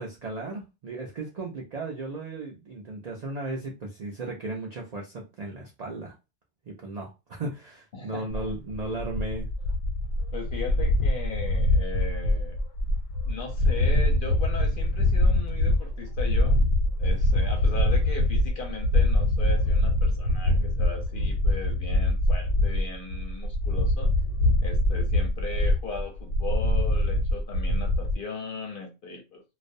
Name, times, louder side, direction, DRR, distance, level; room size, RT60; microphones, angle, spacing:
voice 1, 0.0-6.1 6.7-9.5, right 2 dB, 65° right, 0.4 m, -35 dB
voice 2, 7.9-8.4 10.3-12.6 13.3-16.6 17.0-24.1 24.6-29.4, left 4 dB, 55° left, 0.6 m, -37 dB
sound 1, 8.3-28.1, left 1 dB, 90° left, 1.0 m, -24 dB
2.4 x 2.1 x 2.5 m
omnidirectional pair, 1.3 m